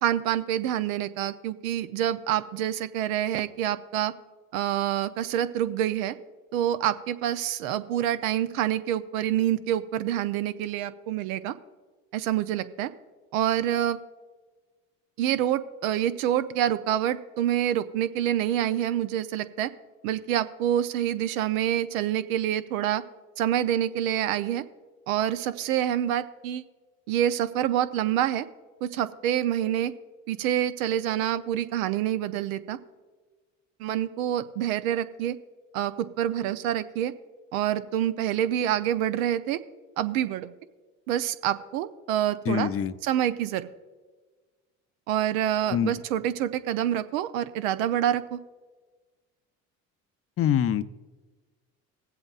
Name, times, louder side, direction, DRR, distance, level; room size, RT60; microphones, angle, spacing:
voice 1, 0.0-4.1 4.5-6.2 6.5-11.5 12.1-12.9 13.3-14.0 15.2-19.7 20.0-23.0 23.4-24.6 25.1-26.6 27.1-28.5 28.8-29.9 30.3-32.8 33.8-35.4 35.7-37.1 37.5-39.6 40.0-40.5 41.1-42.7 43.0-43.7 45.1-48.4, right 11 dB, 80° right, 13 dB, 0.7 m, -27 dB
voice 2, 42.5-42.9 45.7-45.9 50.4-50.8, left 10 dB, 35° left, 14 dB, 0.6 m, -24 dB
20.5 x 7.8 x 2.4 m, 1.4 s
hypercardioid pair, 65°, 41 cm